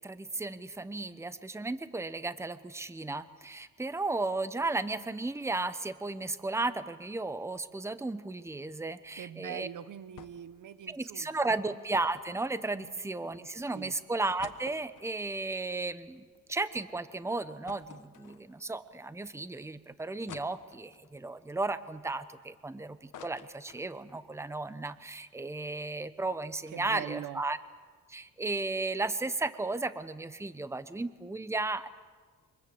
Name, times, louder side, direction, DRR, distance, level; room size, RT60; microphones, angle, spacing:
voice 1, 0.0-9.7 10.9-27.6 28.1-31.9, right 2 dB, 10° right, 13 dB, 0.9 m, -34 dB
voice 2, 9.1-11.5 12.7-12.9 13.4-14.0 26.7-27.4, right 10 dB, 75° right, 14 dB, 1.2 m, -43 dB
sound 1, 10.2-10.6 10.9-11.0 11.9-13.2 13.7-13.8 14.1-16.6 17.0-17.1 17.7-18.8 19.3-19.4 20.3-21.1 21.7-22.6 22.9-24.2 24.6-24.7 24.9-25.2, left 9 dB, 75° left, 1.5 m, -52 dB
27.0 x 25.0 x 7.9 m, 1.5 s
cardioid pair, 125°, 32 cm